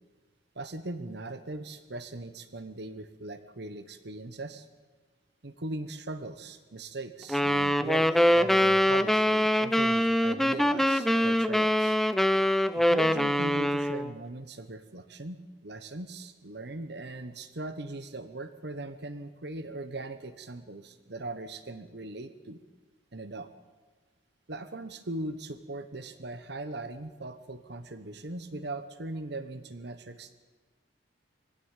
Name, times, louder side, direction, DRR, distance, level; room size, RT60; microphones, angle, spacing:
voice 1, 0.5-4.7 5.4-12.0 12.7-22.6 23.1-23.5 24.5-30.3, right 2 dB, 65° right, 11 dB, 1.2 m, -39 dB
sound 1, 7.3-14.1, equal, ahead, 0.6 m, -24 dB
22.0 x 16.0 x 9.1 m, 1.3 s
head